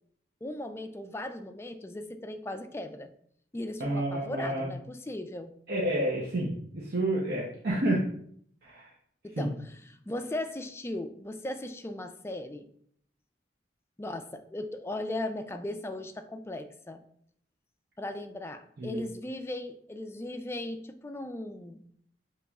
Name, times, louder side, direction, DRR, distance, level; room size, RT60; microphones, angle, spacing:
voice 1, 0.4-3.1 3.5-5.5 9.2-12.7 14.0-17.0 18.0-21.8, left 1 dB, 15° left, 8 dB, 0.3 m, -37 dB
voice 2, 3.8-4.7 5.7-8.0 8.6-8.9 9.4-9.5 18.8-19.0, right 1 dB, 60° right, -3 dB, 0.7 m, -29 dB
6.6 x 3.0 x 2.3 m, 0.66 s
head